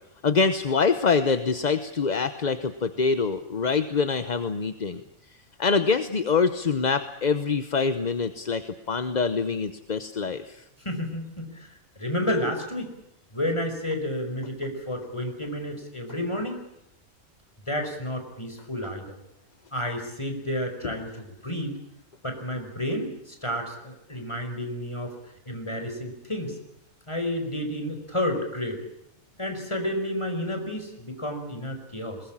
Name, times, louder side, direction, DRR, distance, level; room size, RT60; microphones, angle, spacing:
voice 1, 0.2-5.0 5.6-10.6, left 5 dB, 35° left, 11 dB, 0.9 m, -25 dB
voice 2, 10.8-12.9 13.3-16.6 17.7-19.2 19.7-21.8 22.2-25.1 25.5-26.6 27.1-28.8 29.4-32.2, left 1 dB, 20° left, 5 dB, 4.9 m, -31 dB
21.5 x 20.5 x 8.7 m, 0.83 s
omnidirectional pair, 1.5 m